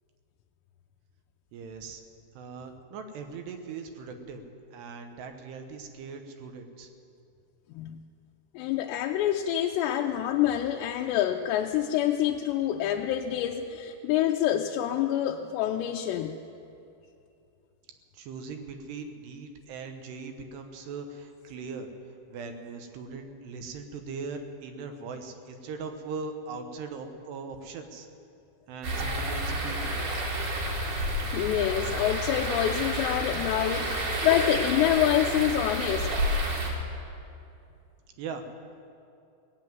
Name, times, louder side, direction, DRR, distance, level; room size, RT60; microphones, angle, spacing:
voice 1, 1.5-2.0 2.4-4.5 4.7-6.9 18.1-21.9 22.3-28.1 28.7-30.0 38.2-38.5, right 4 dB, 80° right, 6 dB, 3.0 m, -40 dB
voice 2, 8.5-16.3 31.2-36.1, left 11 dB, 90° left, 2 dB, 2.8 m, -27 dB
sound 1, 28.8-36.7, right 1 dB, 55° right, 3.1 m, -30 dB
18.5 x 7.7 x 9.1 m, 2.6 s
omnidirectional pair, 4.9 m